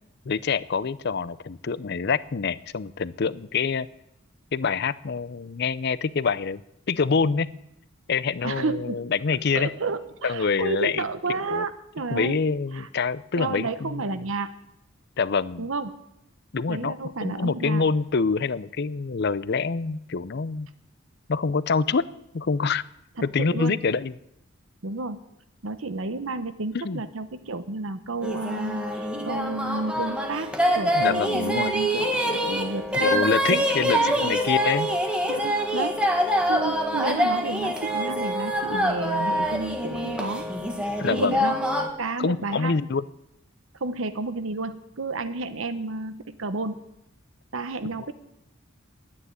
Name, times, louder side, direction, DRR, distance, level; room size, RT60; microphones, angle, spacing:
voice 1, 0.3-3.9 4.5-6.6 6.9-7.5 8.1-9.7 10.2-11.0 11.5-11.6 12.1-14.0 15.2-15.7 16.5-16.9 17.2-20.7 21.3-22.0 22.3-22.8 23.2-24.1 26.7-27.0 30.9-31.7 33.0-34.9 41.0-41.4 42.2-43.0, left 5 dB, 55° left, 18 dB, 0.5 m, -26 dB
voice 2, 8.4-9.0 9.5-12.4 12.7-12.9 13.4-14.5 15.6-16.0 16.7-17.8 23.4-23.8 24.8-25.2 25.6-34.4 35.3-36.0 36.5-40.4 41.1-41.6 42.0-42.7 43.8-46.8 47.5-48.1, right 3 dB, 70° right, 10 dB, 0.9 m, -31 dB
sound 1, 28.2-41.9, equal, 5° right, 1.5 m, -25 dB
11.5 x 9.7 x 9.6 m, 0.81 s
head